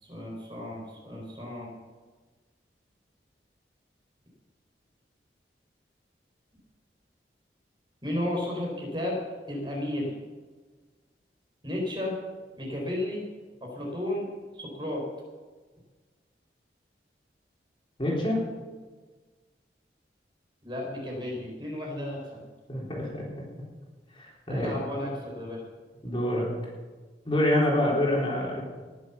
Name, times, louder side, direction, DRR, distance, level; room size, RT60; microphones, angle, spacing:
voice 1, 0.0-1.7 8.0-9.2 9.5-10.1 11.6-12.1 12.6-13.2 13.6-14.3 14.5-15.0 20.6-22.4 24.5-25.6, left 1 dB, 25° right, -1 dB, 4.4 m, -33 dB
voice 2, 18.0-18.4 22.7-23.4 24.2-24.7 26.0-26.5 27.3-28.6, left 1 dB, 30° left, -3 dB, 3.9 m, -26 dB
20.0 x 7.8 x 7.1 m, 1.4 s
head